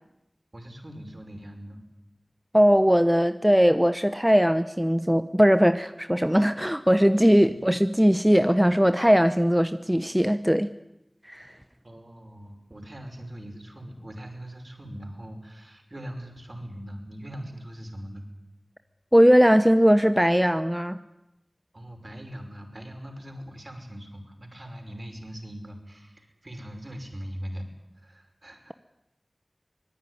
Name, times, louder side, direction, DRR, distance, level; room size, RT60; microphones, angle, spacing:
voice 1, 0.5-1.8 11.8-18.2 21.7-27.7 28.0-28.7, equal, 55° right, 4 dB, 5.6 m, -41 dB
voice 2, 2.5-10.7 11.3-11.5 19.1-21.0, equal, 5° right, 10 dB, 0.9 m, -20 dB
24.5 x 20.0 x 9.9 m, 0.91 s
wide cardioid pair, 45°, 0 cm